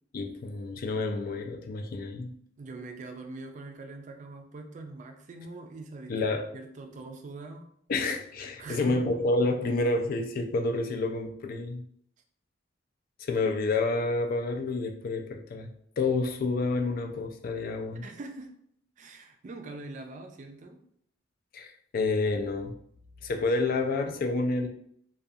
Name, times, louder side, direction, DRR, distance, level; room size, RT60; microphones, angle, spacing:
voice 1, 0.1-2.3 6.1-6.4 7.9-11.8 13.2-15.7 16.0-18.0 21.5-22.7 23.2-24.7, left 3 dB, 50° left, 4 dB, 0.3 m, -29 dB
voice 2, 2.6-7.7 8.6-9.0 18.0-18.5 19.0-20.8, right 3 dB, 40° right, 5 dB, 0.3 m, -43 dB
2.4 x 2.3 x 2.6 m, 0.67 s
head